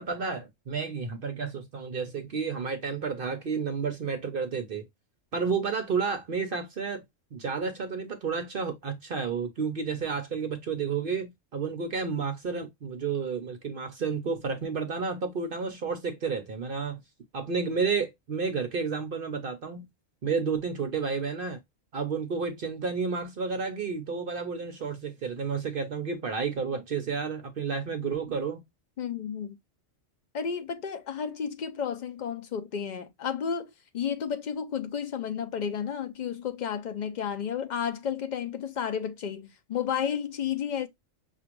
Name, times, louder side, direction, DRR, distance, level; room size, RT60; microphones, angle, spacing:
voice 1, 0.0-4.9 5.3-7.0 7.3-17.0 17.3-19.8 20.2-21.6 21.9-28.6, right 5 dB, 50° right, 0.8 m, -31 dB
voice 2, 29.0-29.6 30.3-40.9, left 7 dB, 70° left, 0.4 m, -32 dB
6.0 x 2.5 x 2.8 m
omnidirectional pair, 1.3 m